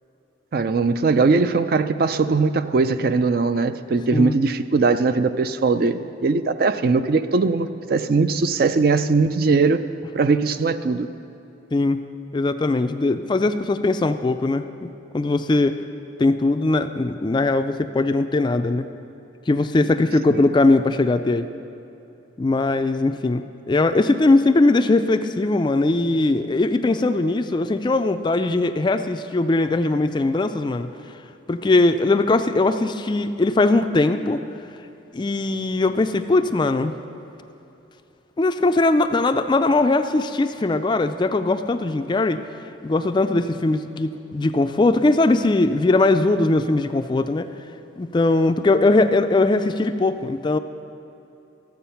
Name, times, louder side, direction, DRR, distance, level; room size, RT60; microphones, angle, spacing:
voice 1, 0.5-9.9 10.1-11.1 20.3-20.4, right 4 dB, 50° right, 11 dB, 0.4 m, -20 dB
voice 2, 11.7-12.0 12.3-15.8 16.2-18.9 19.5-21.5 22.4-30.9 31.5-34.4 35.1-37.0 38.4-42.4 42.8-47.5 48.0-50.6, left 2 dB, 25° left, 9 dB, 0.3 m, -20 dB
13.0 x 7.8 x 5.7 m, 2.9 s
head